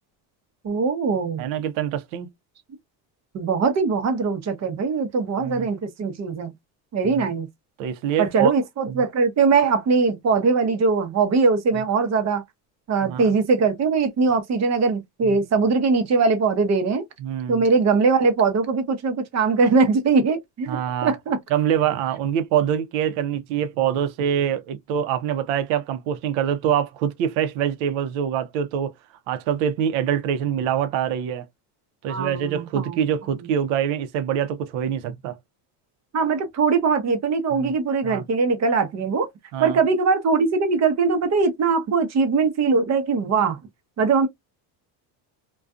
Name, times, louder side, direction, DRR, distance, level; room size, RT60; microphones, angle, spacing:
voice 1, 0.6-1.4 3.3-6.5 6.9-7.5 8.2-12.4 12.9-17.0 17.5-21.4 32.1-33.1 36.1-39.3 39.6-43.6 44.0-44.3, right 4 dB, 35° right, 0.7 m, -21 dB
voice 2, 1.4-2.3 5.4-5.7 7.0-7.3 7.8-8.5 8.9-9.0 13.0-13.3 15.2-15.4 17.2-17.6 20.7-21.1 21.5-28.9 29.3-31.5 32.0-35.4 37.5-37.7 38.0-38.2 39.5-39.8, right 9 dB, 80° right, 0.7 m, -25 dB
2.5 x 2.3 x 2.3 m
cardioid pair, 115°, 46 cm